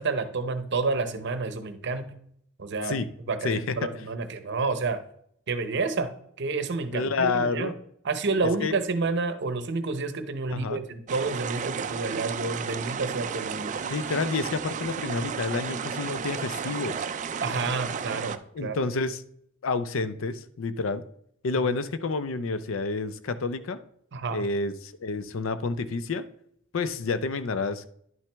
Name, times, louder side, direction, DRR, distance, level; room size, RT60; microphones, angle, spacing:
voice 1, 0.0-2.1 2.6-2.9 3.3-3.5 3.8-5.0 5.5-6.1 6.4-7.7 8.0-13.7 17.4-18.8 24.1-24.4, right 3 dB, 55° right, 10 dB, 0.7 m, -29 dB
voice 2, 3.4-3.9 6.9-7.7 8.6-8.8 10.5-10.8 13.8-17.1 18.5-19.2 19.6-21.0 21.4-23.8 24.3-26.2 26.7-27.9, left 4 dB, 70° left, 13 dB, 0.5 m, -29 dB
sound 1, 11.1-18.4, right 6 dB, 35° right, 0.3 m, -33 dB
10.5 x 5.9 x 3.4 m, 0.68 s
head